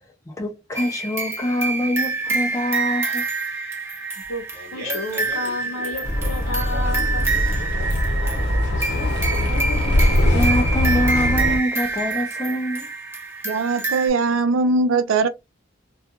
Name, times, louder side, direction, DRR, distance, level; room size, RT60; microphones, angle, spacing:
voice 1, 0.3-3.3 8.7-12.9, left 1 dB, 15° left, 0.4 m, -26 dB
sound 1, 0.8-14.1, right 3 dB, 15° right, 0.9 m, -27 dB
Fart, 4.2-12.2, equal, 55° right, 0.8 m, -40 dB
voice 2, 4.7-7.2, left 2 dB, 85° left, 0.6 m, -30 dB
Bus, 6.0-11.6, left 1 dB, 60° left, 0.8 m, -21 dB
voice 3, 13.4-15.3, right 3 dB, 80° right, 0.4 m, -20 dB
2.3 x 2.3 x 2.8 m
head